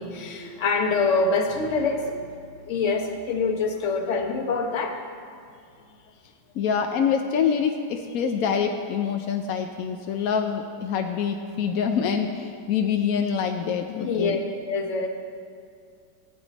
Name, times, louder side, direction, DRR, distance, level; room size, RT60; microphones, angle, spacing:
voice 1, 0.0-2.2 2.7-5.0 13.9-14.4 14.7-15.1, left 4 dB, 50° left, 4 dB, 1.0 m, -25 dB
voice 2, 6.6-14.4, left 7 dB, 80° left, 5 dB, 0.8 m, -25 dB
16.0 x 8.2 x 4.0 m, 2.4 s
omnidirectional pair, 2.1 m